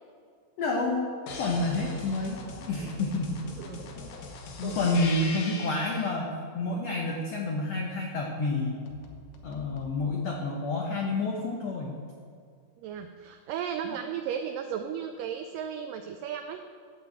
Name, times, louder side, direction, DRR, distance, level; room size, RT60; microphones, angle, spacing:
voice 1, 0.6-3.4 4.6-8.8 9.4-11.9 13.8-14.0, left 2 dB, 90° left, 0 dB, 1.4 m, -29 dB
sound 1, 1.3-6.1 8.9-9.9, left 3 dB, 70° left, 2.7 m, -41 dB
voice 2, 12.8-16.6, right 8 dB, 85° right, 7 dB, 1.9 m, -35 dB
12.5 x 5.7 x 7.8 m, 2.2 s
omnidirectional pair, 4.5 m